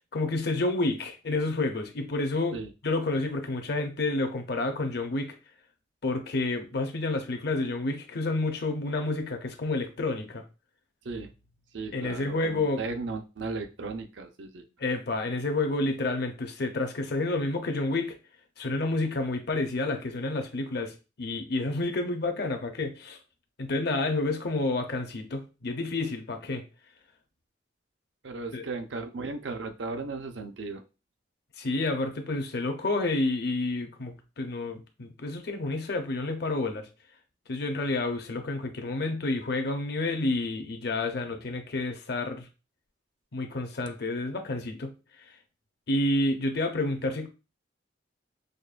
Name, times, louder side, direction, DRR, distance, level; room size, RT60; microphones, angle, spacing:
voice 1, 0.1-2.6 2.8-5.3 6.0-10.4 11.9-12.8 14.8-18.2 18.6-23.2 23.6-26.6 28.5-28.6 31.6-36.9 37.5-42.5 43.3-44.9 45.9-47.3, left 2 dB, 60° left, 0.7 m, -29 dB
voice 2, 11.7-14.6 28.2-30.8, right 3 dB, 80° right, 0.6 m, -36 dB
5.1 x 2.2 x 2.5 m
head